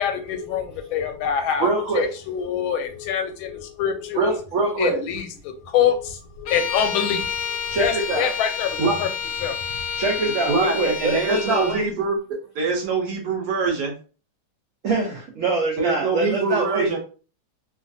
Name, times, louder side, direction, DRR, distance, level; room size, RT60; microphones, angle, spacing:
voice 1, 0.0-1.7 2.0-4.3 4.8-9.1 9.4-9.5, left 8 dB, 90° left, 6 dB, 1.4 m, -25 dB
voice 2, 1.6-2.1 4.1-5.0 7.7-8.3 9.9-11.9 14.8-16.9, right 2 dB, 85° right, -1 dB, 0.6 m, -23 dB
Bowed string instrument, 6.5-11.9, left 6 dB, 70° left, 1.0 m, -29 dB
voice 3, 10.5-12.2 12.5-13.9 15.8-17.0, right 4 dB, 65° right, 1 dB, 1.1 m, -24 dB
3.1 x 2.4 x 2.6 m, 0.37 s
omnidirectional pair, 2.2 m